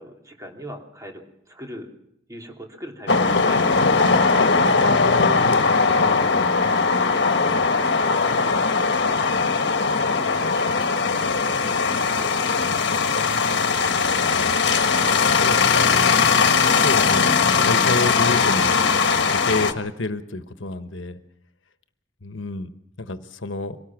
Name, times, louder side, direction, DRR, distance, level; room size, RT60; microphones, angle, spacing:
voice 1, 0.0-1.9 2.3-4.8 7.1-11.4 12.2-12.7 13.4-13.8, equal, 20° right, 1 dB, 3.1 m, -41 dB
sound 1, 3.1-19.7, left 4 dB, 65° left, 1.5 m, -19 dB
voice 2, 5.4-6.8 12.6-13.8 15.2-16.2 16.5-17.3 17.6-18.9 19.3-21.2 22.2-22.7 23.0-23.8, left 2 dB, 80° left, 10 dB, 1.2 m, -30 dB
24.5 x 18.5 x 6.1 m, 0.75 s
head